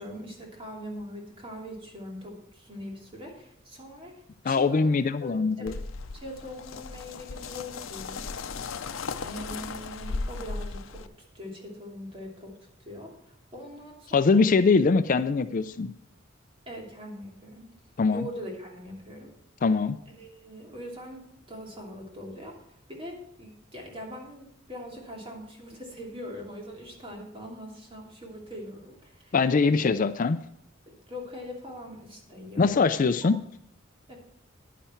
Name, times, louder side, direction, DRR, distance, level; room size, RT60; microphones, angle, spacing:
voice 1, 0.0-4.9 5.2-5.8 6.1-8.3 8.8-11.1 11.3-12.5 12.8-14.4 16.7-17.7 18.1-19.3 20.2-29.4 29.6-29.8 30.9-32.8 34.1-34.2, equal, 30° right, -1 dB, 2.8 m, -42 dB
voice 2, 4.5-5.7 14.1-15.9 18.0-18.2 19.6-20.0 29.3-30.4 32.6-33.4, left 4 dB, 45° left, 12 dB, 0.4 m, -22 dB
sound 1, 5.7-11.1, left 4 dB, 85° left, 0.6 m, -36 dB
10.5 x 10.0 x 4.5 m, 0.71 s
head